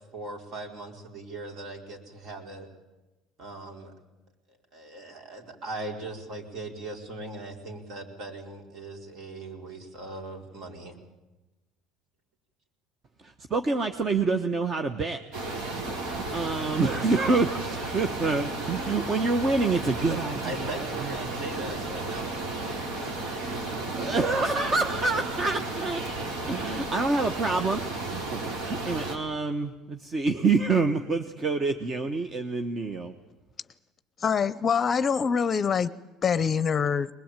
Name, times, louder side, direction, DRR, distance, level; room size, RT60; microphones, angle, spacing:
voice 1, 0.1-2.7 3.4-3.9 4.5-11.0 20.4-22.9, right 2 dB, 55° right, 2 dB, 4.6 m, -39 dB
voice 2, 13.2-15.2 15.8-20.5 24.0-26.0 26.4-27.8 28.1-33.1, right 3 dB, 30° right, 8 dB, 1.2 m, -27 dB
sound 1, 15.3-29.2, right 2 dB, 75° right, 4.7 m, -33 dB
voice 3, 34.2-35.9 36.2-37.1, left 6 dB, 30° left, 15 dB, 0.7 m, -24 dB
21.0 x 21.0 x 9.0 m, 1.1 s
supercardioid pair, 115°, 0 cm